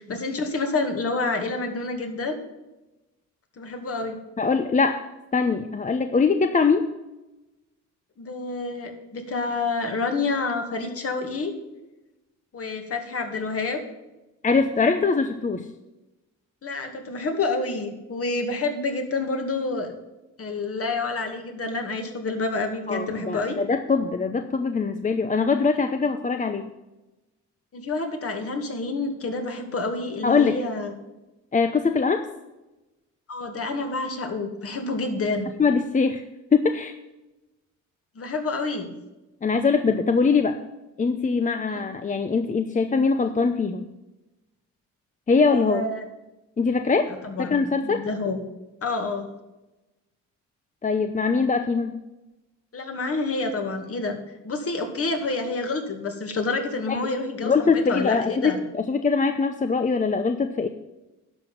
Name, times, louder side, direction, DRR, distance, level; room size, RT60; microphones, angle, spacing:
voice 1, 0.0-2.4 3.6-4.2 8.2-11.5 12.5-13.8 16.6-19.9 20.4-23.6 27.7-30.9 33.3-35.5 38.2-38.9 41.7-41.8 45.5-46.0 47.1-48.4 48.8-49.3 52.7-54.2 54.4-58.6, left 3 dB, 50° left, 4 dB, 2.2 m, -28 dB
voice 2, 4.4-6.9 14.4-15.7 22.9-26.7 30.2-30.6 31.5-32.3 35.6-36.2 36.5-36.9 39.4-40.6 41.0-43.9 45.3-45.9 46.6-48.1 50.8-51.9 56.9-57.0 57.4-60.7, left 4 dB, 25° left, 8 dB, 0.7 m, -22 dB
11.5 x 5.9 x 7.3 m, 1.0 s
cardioid pair, 90°, 30 cm